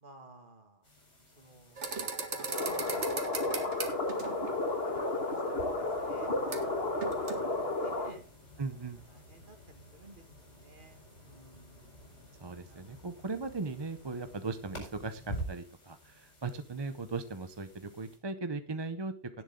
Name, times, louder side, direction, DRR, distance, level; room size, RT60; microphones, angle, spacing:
voice 1, 0.0-0.8 1.4-1.8 2.4-3.1 3.4-4.5 5.1-5.4 5.8-8.2 8.8-11.9 12.7-13.0 19.3-19.4, right 2 dB, 45° right, 5 dB, 2.3 m, -55 dB
sound 1, 0.8-18.2, right 1 dB, 70° left, 5.7 m, -50 dB
sound 2, 1.8-4.5 6.5-6.7 7.0-7.4, right 4 dB, 70° right, 2.1 m, -37 dB
sound 3, 2.5-8.1, left 2 dB, 55° left, 2.2 m, -32 dB
voice 2, 8.6-9.0 12.4-19.4, right 3 dB, 25° right, 10 dB, 0.6 m, -38 dB
17.5 x 7.5 x 3.7 m, 0.36 s
omnidirectional pair, 1.2 m